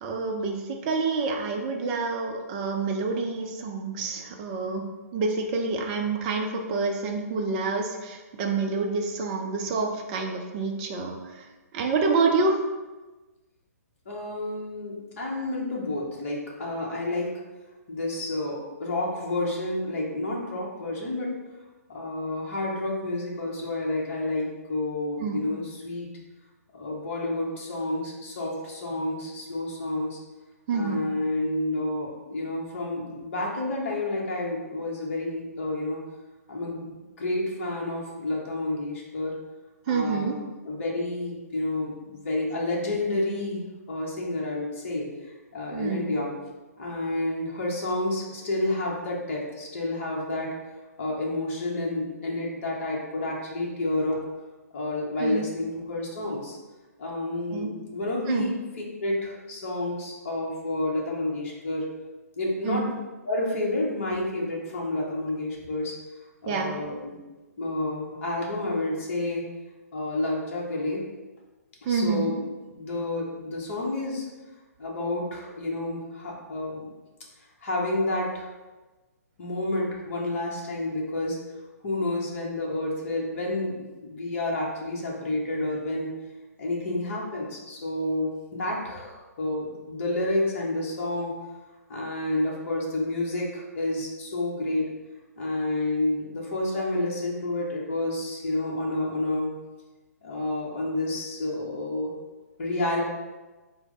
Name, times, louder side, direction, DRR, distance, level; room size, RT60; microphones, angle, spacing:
voice 1, 0.0-4.8 5.1-11.2 11.7-12.6 25.2-25.4 30.7-31.0 39.9-40.4 45.7-46.1 55.2-55.5 57.5-57.7 58.3-58.5 62.6-62.8 66.5-66.7 71.9-72.2, right 4 dB, 30° right, 2 dB, 0.5 m, -27 dB
voice 2, 14.1-17.3 17.9-21.3 21.9-26.1 26.7-30.2 30.7-36.0 36.5-39.3 39.9-40.4 40.6-46.3 46.8-50.5 51.0-54.2 54.7-56.6 57.0-61.9 62.4-63.0 63.2-65.9 66.4-67.2 67.6-69.4 69.9-71.0 71.8-72.3 72.7-74.2 74.8-76.9 77.6-78.5 79.4-81.4 81.8-86.1 86.6-91.3 91.9-94.9 95.4-99.5 100.2-102.1 102.6-103.0, left 2 dB, 50° left, -3 dB, 1.0 m, -30 dB
4.5 x 2.1 x 3.8 m, 1.2 s
figure-of-eight pair, 125°, 9 cm